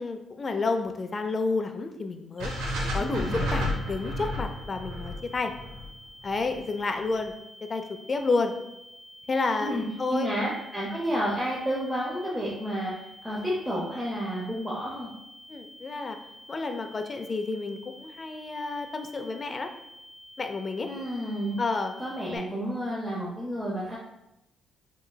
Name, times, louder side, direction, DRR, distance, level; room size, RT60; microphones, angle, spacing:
voice 1, 0.0-2.5 2.9-5.5 6.2-7.3 7.7-8.5 9.3-10.3 15.5-16.2 16.5-19.7 20.4-20.9 21.6-21.9 22.3-22.7, left 3 dB, 35° left, 6 dB, 0.4 m, -30 dB
sound 1, 2.4-22.4, equal, 15° left, 1.0 m, -50 dB
sound 2, 2.4-6.6, left 1 dB, 90° right, 0.6 m, -31 dB
voice 2, 3.0-3.4 9.6-12.9 13.2-15.1 20.8-21.6 22.0-24.0, equal, 10° right, -5 dB, 0.7 m, -31 dB
3.8 x 3.0 x 2.2 m, 0.87 s
cardioid pair, 90°, 0 cm